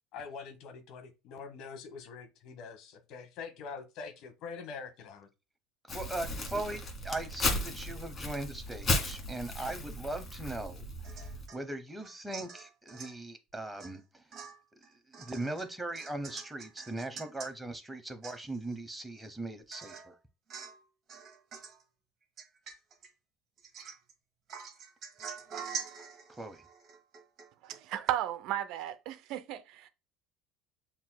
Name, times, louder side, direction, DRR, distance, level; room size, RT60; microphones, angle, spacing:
voice 1, 0.1-5.3, left 5 dB, 60° left, 1.0 m, -44 dB
Crumpling crinkling, 5.9-11.5, left 2 dB, 35° left, 1.5 m, -35 dB
voice 2, 5.9-14.2 15.2-20.1 26.4-26.6, right 2 dB, 10° right, 0.9 m, -39 dB
Domestic sounds home sounds / Chink clink / Drip, 11.0-11.6 12.0-13.2 13.8-14.0 14.3-17.5 17.9-18.0 18.2-18.7 19.2-19.3 19.7-20.1 20.5-20.8 21.1-21.8 22.4-23.1 23.6-24.1 24.5-27.8 28.1-28.2, right 6 dB, 45° right, 1.4 m, -45 dB
voice 3, 27.6-29.9, right 12 dB, 65° right, 0.5 m, -35 dB
7.1 x 2.8 x 2.2 m
hypercardioid pair, 70°, 0 cm